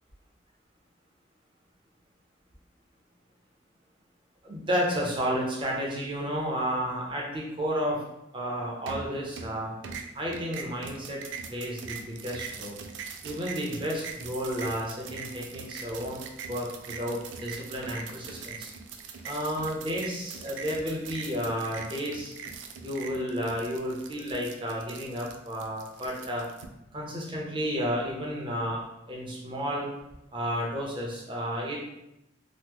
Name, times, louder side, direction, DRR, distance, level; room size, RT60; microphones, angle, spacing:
voice 1, 4.4-8.0 8.3-9.7 10.1-11.2 11.5-12.8 13.2-16.2 16.5-18.7 19.2-22.3 22.8-26.4 26.9-28.8 29.1-29.9 30.3-31.8, equal, 25° right, -3 dB, 0.6 m, -32 dB
sound 1, 8.9-9.6 9.8-26.7, right 5 dB, 85° right, 0.3 m, -42 dB
2.9 x 2.0 x 3.5 m, 0.86 s
head